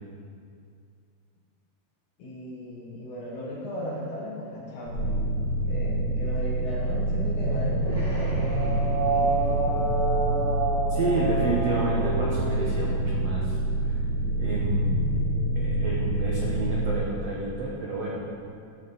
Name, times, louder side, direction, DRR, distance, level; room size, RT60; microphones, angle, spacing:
voice 1, 2.2-5.2 5.6-8.6 9.1-9.8, left 1 dB, 60° left, -4 dB, 2.3 m, -36 dB
sound 1, 4.9-16.9, right 1 dB, 45° left, 1.9 m, -27 dB
sound 2, 7.8-13.3, right 2 dB, 5° left, 0.9 m, -29 dB
voice 2, 10.9-14.0 14.3-15.0 15.5-18.2, right 3 dB, 80° right, -4 dB, 1.4 m, -30 dB
13.5 x 7.6 x 4.0 m, 2.3 s
omnidirectional pair, 4.8 m